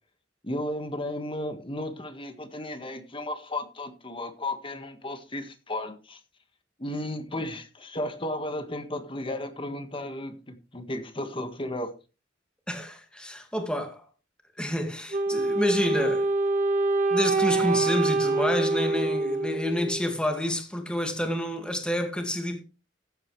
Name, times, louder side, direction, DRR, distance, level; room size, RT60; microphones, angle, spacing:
voice 1, 0.4-6.2 6.8-11.9, left 1 dB, 30° left, 1.6 m, -34 dB
voice 2, 12.7-14.0 14.6-16.3 17.1-22.6, left 1 dB, 5° left, 2.1 m, -29 dB
Wind instrument woodwind instrument, 15.1-20.2, right 3 dB, 40° right, 1.6 m, -25 dB
15.0 x 8.9 x 3.2 m
head